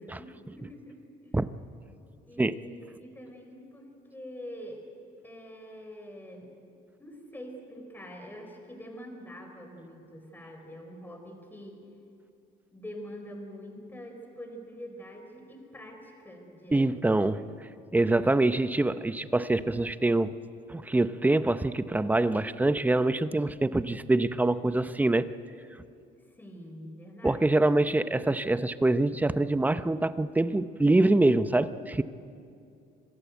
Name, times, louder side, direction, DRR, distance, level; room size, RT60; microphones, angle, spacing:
voice 1, 0.0-1.4 2.2-4.8 5.2-6.5 7.0-11.8 12.7-17.5 26.3-27.5, equal, 10° left, 3 dB, 4.1 m, -45 dB
voice 2, 16.7-17.4 17.9-20.3 20.7-25.3 27.2-32.0, right 2 dB, 10° right, 13 dB, 0.7 m, -25 dB
25.0 x 15.5 x 9.2 m, 2.5 s
cardioid pair, 110°, 17 cm